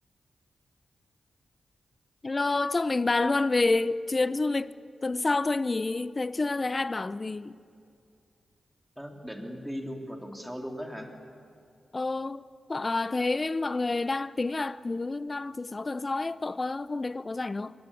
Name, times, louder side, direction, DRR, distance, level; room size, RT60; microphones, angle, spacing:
voice 1, 2.2-4.7 5.0-7.6 11.9-12.4 12.7-17.7, left 3 dB, 35° left, 0.6 m, -28 dB
voice 2, 9.0-11.1, equal, 5° right, 3.1 m, -38 dB
23.0 x 18.0 x 8.5 m
cardioid pair, 70°, 0 cm